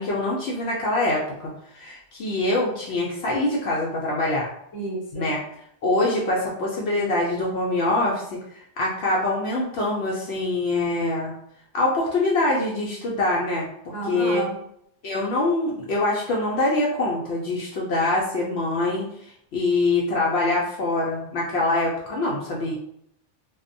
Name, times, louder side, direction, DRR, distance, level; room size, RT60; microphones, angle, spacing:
voice 1, 0.0-4.5 5.1-5.4 5.8-11.3 11.7-14.5 15.0-22.7, left 2 dB, 65° left, -4 dB, 0.8 m, -24 dB
voice 2, 4.7-5.3 13.9-14.6, right 1 dB, 20° left, -4 dB, 0.7 m, -30 dB
2.7 x 2.1 x 2.5 m, 0.71 s
omnidirectional pair, 1.3 m